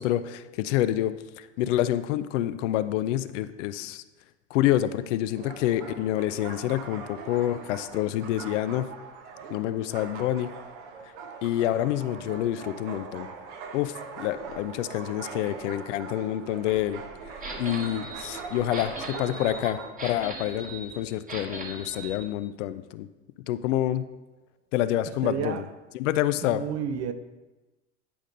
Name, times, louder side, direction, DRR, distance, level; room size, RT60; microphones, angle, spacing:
voice 1, 0.0-4.0 4.5-8.9 9.5-10.5 11.4-13.3 13.7-17.0 17.3-23.1 23.5-24.0 24.7-25.7 25.9-26.6, left 13 dB, 70° left, 0.5 m, -27 dB
sound 1, 5.3-19.9, right 5 dB, 65° right, 1.1 m, -41 dB
sound 2, 17.4-22.2, right 2 dB, 20° right, 1.3 m, -39 dB
voice 2, 25.2-25.6 26.4-27.1, right 8 dB, 40° right, 0.7 m, -31 dB
10.0 x 5.1 x 3.9 m
hypercardioid pair, 95°, 38 cm